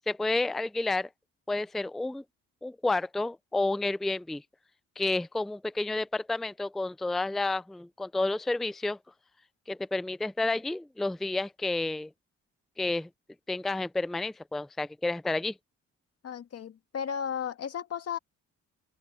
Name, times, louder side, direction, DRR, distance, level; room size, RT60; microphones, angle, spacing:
voice 1, 0.1-1.1 1.5-2.2 2.6-4.4 5.0-9.0 9.7-12.1 12.8-13.1 13.5-15.5, left 2 dB, ahead, 0.4 m, -30 dB
voice 2, 16.2-18.2, left 8 dB, 55° left, 2.1 m, -34 dB
open air
cardioid pair, 90°, 30 cm